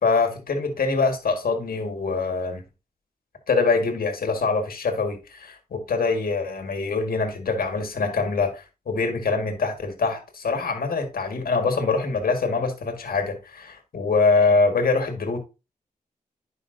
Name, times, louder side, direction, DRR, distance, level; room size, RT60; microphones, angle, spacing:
voice 1, 0.0-2.6 3.5-15.4, left 4 dB, 75° left, 1.7 m, -24 dB
10.0 x 5.3 x 2.6 m
cardioid pair, 60°, 15 cm